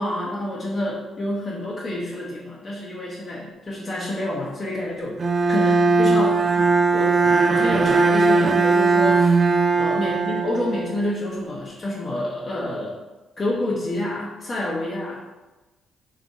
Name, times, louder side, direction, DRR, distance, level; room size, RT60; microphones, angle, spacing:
voice 1, 0.0-7.2 7.4-9.4 9.8-12.9 13.4-15.2, left 1 dB, 30° left, -5 dB, 0.7 m, -28 dB
Bowed string instrument, 5.2-11.2, right 3 dB, 40° right, 0.3 m, -19 dB
3.5 x 2.4 x 4.0 m, 1.1 s
cardioid pair, 90°, 0 cm